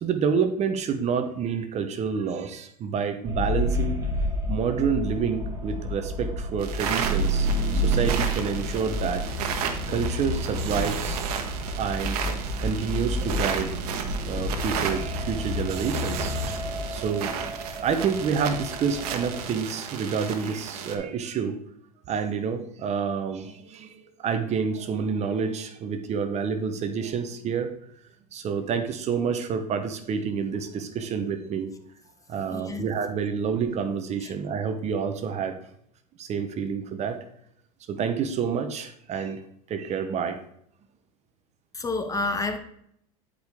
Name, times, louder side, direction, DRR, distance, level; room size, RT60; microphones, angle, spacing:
voice 1, 0.0-4.0 4.5-7.5 7.8-9.3 9.9-11.2 11.8-13.8 14.1-16.4 16.9-21.6 22.1-27.7 28.3-31.7 32.3-35.6 36.2-37.2 37.9-39.4 39.7-40.4, right 6 dB, 35° right, 8 dB, 0.8 m, -28 dB
sound 1, 3.3-19.4, equal, 20° right, 2.0 m, -30 dB
sound 2, 6.6-21.0, right 7 dB, 75° right, 1.2 m, -33 dB
voice 2, 32.5-32.8 34.2-34.3 41.7-42.6, left 3 dB, 15° left, 7 dB, 0.9 m, -29 dB
10.5 x 5.0 x 3.5 m, 0.70 s
supercardioid pair, 110°, 20 cm